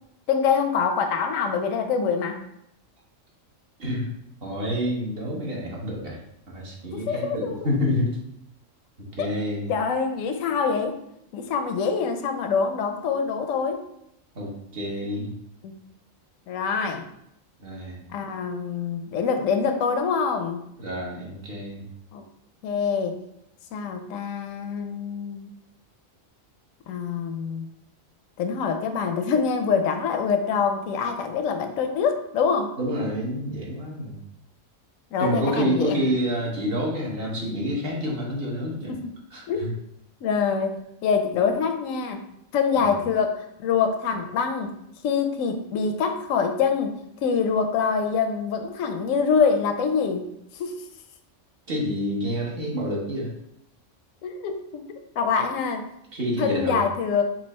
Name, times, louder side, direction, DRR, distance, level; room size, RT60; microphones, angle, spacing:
voice 1, 0.3-2.4 6.9-7.6 9.2-9.4 9.7-11.0 11.3-13.8 15.0-15.2 15.6-15.7 16.5-17.0 18.1-20.6 22.1-22.2 22.6-23.2 23.7-25.5 26.9-27.7 28.4-32.7 35.1-36.0 38.9-39.0 39.5-39.6 40.2-42.2 42.5-44.7 45.0-46.9 47.2-50.3 50.6-50.8 54.2-54.8 55.2-55.8 56.4-57.2, left 6 dB, 80° left, 5 dB, 1.0 m, -25 dB
voice 2, 4.4-6.2 6.5-8.2 9.0-9.7 14.3-15.3 17.6-18.0 20.8-21.8 32.8-34.2 35.2-38.9 39.3-39.7 42.7-42.9 51.7-53.3 56.1-56.8, equal, 50° right, -3 dB, 1.3 m, -28 dB
4.6 x 2.6 x 4.2 m, 0.77 s
omnidirectional pair, 1.4 m